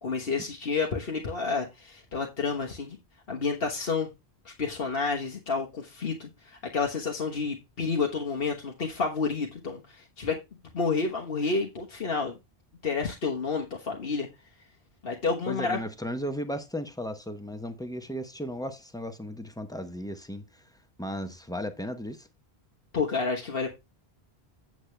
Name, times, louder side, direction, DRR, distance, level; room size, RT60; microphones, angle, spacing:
voice 1, 0.0-3.0 3.3-4.1 4.4-10.4 10.7-12.4 12.8-14.3 15.0-15.8 22.9-23.7, left 4 dB, 65° left, 1.6 m, -30 dB
voice 2, 15.5-20.6 21.0-22.3, equal, 5° left, 0.9 m, -35 dB
8.5 x 8.0 x 3.3 m
omnidirectional pair, 1.1 m